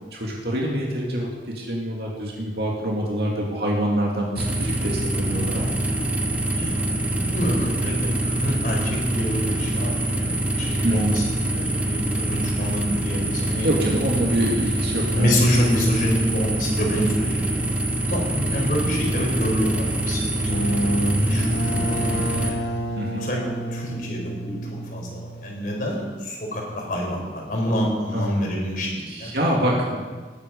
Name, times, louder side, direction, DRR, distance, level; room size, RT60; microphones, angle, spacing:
voice 1, 0.1-1.3 1.6-5.8 10.8-11.1 13.6-15.4 23.0-23.2 28.1-28.4 29.1-30.0, right 1 dB, 60° right, -2 dB, 2.4 m, -25 dB
sound 1, 4.4-22.5, right 1 dB, 10° right, 1.1 m, -25 dB
voice 2, 6.5-11.2 11.5-13.7 15.1-17.6 18.1-22.6 23.2-24.6 24.9-29.3, equal, 50° left, -1 dB, 4.5 m, -27 dB
sound 2, 20.3-25.8, right 1 dB, 65° left, 1.7 m, -28 dB
19.5 x 10.0 x 5.3 m, 1.4 s
head